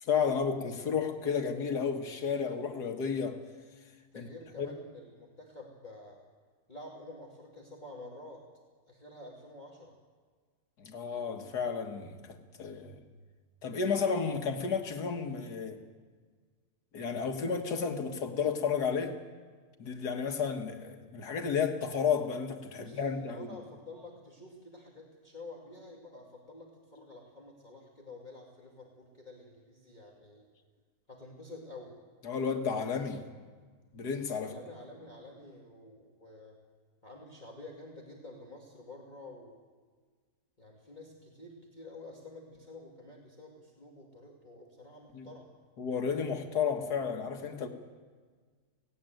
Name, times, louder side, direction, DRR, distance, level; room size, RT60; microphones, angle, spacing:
voice 1, 0.0-3.4 4.2-4.3 4.6-4.7 10.8-13.0 13.6-15.8 16.9-19.2 19.8-23.6 32.2-33.3 33.9-34.5 45.1-45.3 45.8-47.7, left 6 dB, 90° left, 6 dB, 2.0 m, -32 dB
voice 2, 4.1-6.2 6.7-8.5 8.9-9.9 22.8-30.5 31.1-32.0 34.4-36.6 37.0-39.6 40.6-45.5, left 2 dB, 30° left, -2 dB, 2.2 m, -49 dB
17.0 x 17.0 x 9.2 m, 1.5 s
omnidirectional pair, 1.7 m